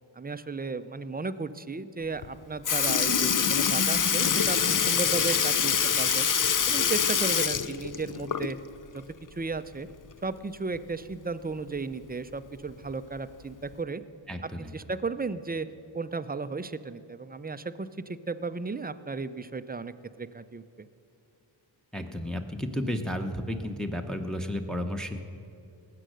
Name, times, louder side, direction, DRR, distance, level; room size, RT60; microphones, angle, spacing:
voice 1, 0.2-6.3 6.7-8.6 8.9-9.0 9.3-9.9 10.2-14.0 14.4-15.7 15.9-20.9, right 4 dB, 20° right, 13 dB, 0.5 m, -34 dB
Sink (filling or washing) / Liquid, 2.2-2.3 2.6-8.7 9.1-9.2 10.7-10.8 11.8-11.9 12.7-12.9 13.7-13.8, left 7 dB, 40° left, 0.5 m, -25 dB
voice 2, 14.3-14.7 21.9-25.2, left 1 dB, ahead, 3 dB, 0.9 m, -32 dB
18.5 x 7.7 x 6.4 m, 2.6 s
wide cardioid pair, 45°, 49 cm